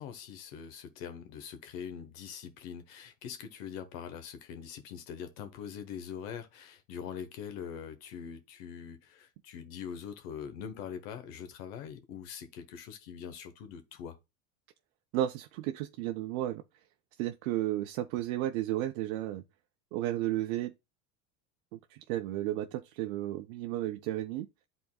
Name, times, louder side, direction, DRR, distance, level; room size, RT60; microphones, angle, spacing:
voice 1, 0.0-14.2, left 8 dB, 75° left, 1.3 m, -43 dB
voice 2, 15.1-16.6 17.2-19.4 19.9-20.7 21.7-24.5, right 13 dB, 70° right, 0.6 m, -33 dB
10.5 x 4.0 x 2.3 m
hypercardioid pair, 90°, 41 cm